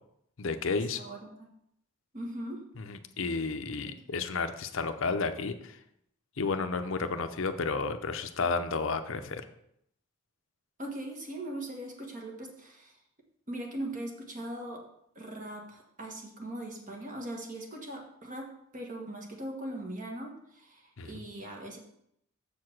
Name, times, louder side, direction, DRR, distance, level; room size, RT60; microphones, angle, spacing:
voice 1, 0.4-1.0 2.8-5.8 6.4-9.4 21.0-21.2, left 4 dB, 65° left, 9 dB, 0.6 m, -32 dB
voice 2, 0.9-1.5 2.1-2.6 10.8-12.9 13.5-14.8 15.1-21.8, right 1 dB, 35° right, 1 dB, 1.4 m, -40 dB
7.1 x 4.8 x 5.9 m, 0.75 s
head